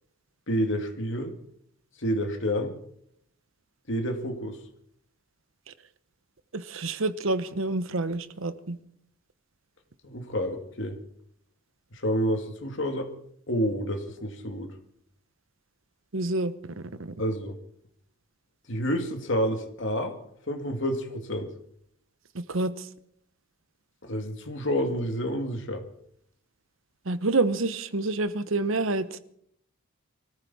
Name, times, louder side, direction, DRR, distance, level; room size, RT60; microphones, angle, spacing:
voice 1, 0.5-1.3 2.0-2.7 3.9-4.6 10.0-11.0 11.9-13.1 13.5-14.7 17.2-17.6 18.7-20.1 20.5-21.5 24.0-25.8, equal, 60° left, 2.2 m, -29 dB
voice 2, 6.5-8.8 16.1-17.1 22.3-22.9 27.1-29.2, right 2 dB, 70° right, 0.9 m, -28 dB
24.0 x 14.0 x 4.2 m
head